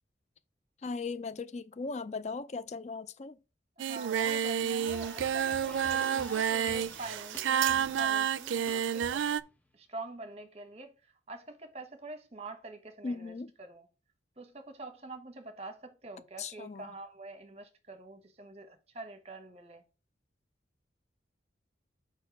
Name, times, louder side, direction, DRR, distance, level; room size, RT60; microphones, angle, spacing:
voice 1, 0.8-3.4 13.0-13.5 16.4-16.9, left 4 dB, 35° left, 0.4 m, -38 dB
voice 2, 3.8-9.3 9.7-10.9 11.3-13.3 13.6-13.8 14.4-19.8, right 2 dB, 35° right, 1.1 m, -45 dB
Singing, 3.8-9.4, right 8 dB, 90° right, 0.4 m, -30 dB
sound 1, 4.8-9.5, left 1 dB, 10° left, 0.7 m, -49 dB
4.8 x 4.4 x 5.9 m
head